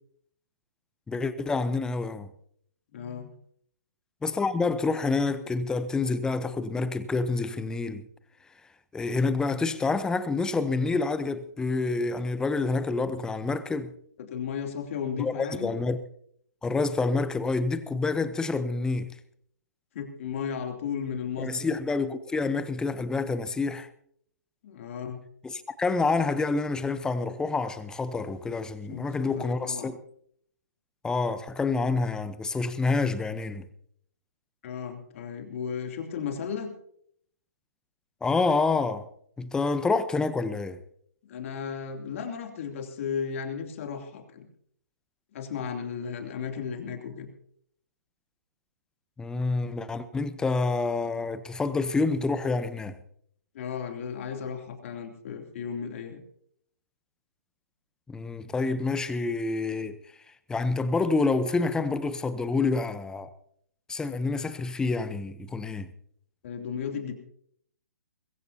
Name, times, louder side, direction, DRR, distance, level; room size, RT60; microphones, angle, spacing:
voice 1, 1.1-2.3 4.2-8.0 8.9-13.9 15.2-16.0 16.6-19.1 21.4-23.9 25.4-29.9 31.0-33.7 38.2-39.1 39.4-40.8 49.2-53.0 58.1-60.0 60.5-63.3 63.9-65.9, left 3 dB, 10° left, 0.8 m, -28 dB
voice 2, 2.9-3.3 14.2-15.7 19.9-21.5 24.6-25.2 28.9-30.0 34.6-36.7 41.2-44.5 45.3-47.3 53.5-56.2 66.4-67.1, left 7 dB, 50° left, 3.0 m, -35 dB
22.0 x 15.0 x 2.8 m
figure-of-eight pair, 130°, 9 cm